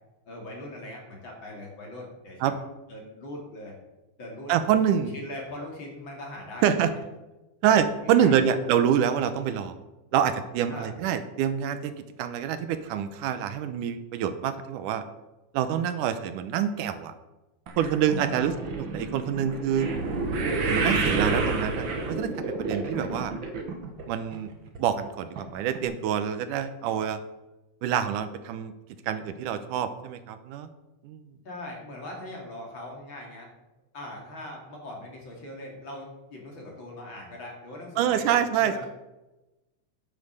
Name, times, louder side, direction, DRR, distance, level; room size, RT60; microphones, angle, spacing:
voice 1, 0.3-3.8 4.2-4.5 5.1-7.0 8.0-8.6 10.7-11.0 18.2-18.7 31.4-33.5 33.9-38.9, left 1 dB, 40° left, -1 dB, 3.1 m, -41 dB
voice 2, 4.5-5.1 6.6-6.9 7.6-9.7 10.1-11.9 12.2-15.0 15.5-17.1 17.8-19.9 20.6-23.3 24.1-24.5 24.8-27.2 27.8-28.7 29.1-30.7 31.0-31.2 38.0-38.9, right 9 dB, 85° right, 10 dB, 2.4 m, -26 dB
sound 1, 17.7-24.0 24.3-24.8 25.4-25.5 25.7-25.8, right 3 dB, 50° right, 1.7 m, -29 dB
9.6 x 8.4 x 6.6 m, 1.0 s
omnidirectional pair, 3.6 m